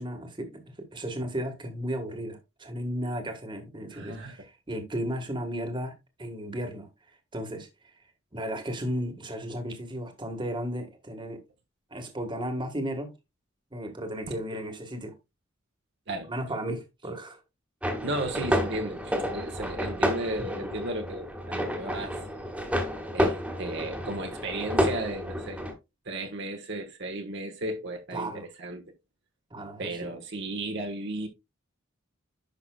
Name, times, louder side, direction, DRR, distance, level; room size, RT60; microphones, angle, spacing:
voice 1, 0.0-6.9 7.3-7.7 8.3-11.4 11.9-13.1 13.7-15.1 16.3-17.4 28.1-28.5 29.5-30.1, equal, 25° right, 1.5 m, -34 dB
voice 2, 3.9-4.3 14.3-14.4 16.1-16.3 18.0-22.2 23.1-25.6 26.0-28.8 29.8-31.3, right 1 dB, 55° right, 1.4 m, -34 dB
sound 1, 17.8-25.7, equal, 5° right, 1.6 m, -30 dB
11.0 x 5.9 x 2.3 m
head